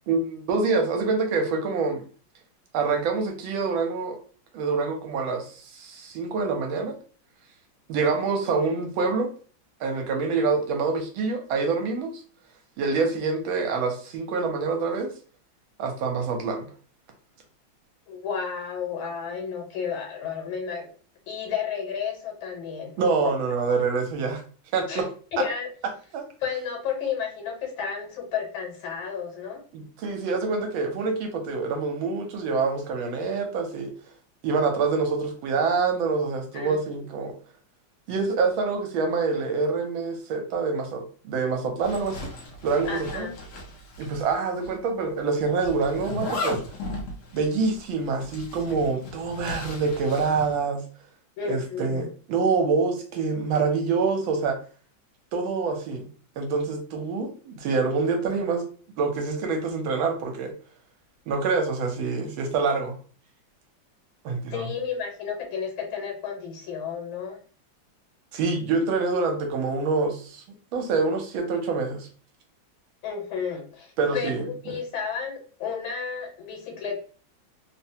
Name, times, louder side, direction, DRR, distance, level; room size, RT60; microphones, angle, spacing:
voice 1, 0.1-2.0 2.7-4.2 4.5-6.9 7.9-9.3 9.8-12.2 12.8-15.1 15.8-16.7 23.0-24.4 24.7-25.1 26.1-26.2 29.7-33.9 34.4-37.3 38.1-42.3 42.6-43.3 44.0-46.6 47.3-50.8 51.5-54.6 55.3-56.1 56.4-58.6 59.0-60.5 61.3-62.9 64.2-64.6 68.3-70.4 70.7-72.1 74.0-74.8, right 4 dB, 80° right, 4 dB, 1.4 m, -26 dB
voice 2, 18.1-20.9 21.3-22.9 23.2-23.3 24.9-25.1 25.3-25.7 26.4-29.6 36.5-36.8 42.9-43.3 51.4-52.1 64.5-67.4 73.0-77.0, left 6 dB, 85° left, 2 dB, 1.7 m, -32 dB
Zipper (clothing), 41.8-44.4 44.6-44.7 45.6-50.5, left 1 dB, 65° left, 1.1 m, -36 dB
3.5 x 2.1 x 2.7 m, 0.40 s
omnidirectional pair, 2.2 m